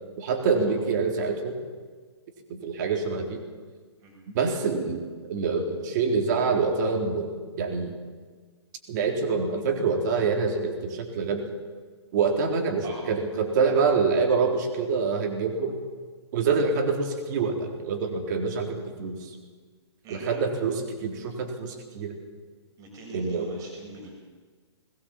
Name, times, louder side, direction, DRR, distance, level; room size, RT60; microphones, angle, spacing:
voice 1, 0.2-1.5 2.5-3.4 4.3-7.9 8.9-11.5 12.1-15.8 16.3-19.3 20.1-22.2 23.1-23.5, right 4 dB, 40° right, 3 dB, 3.9 m, -26 dB
voice 2, 12.8-13.2 20.0-20.4 22.8-24.1, right 2 dB, 25° right, 0 dB, 7.0 m, -43 dB
21.0 x 19.5 x 7.4 m, 1.5 s
figure-of-eight pair, 120°, 15 cm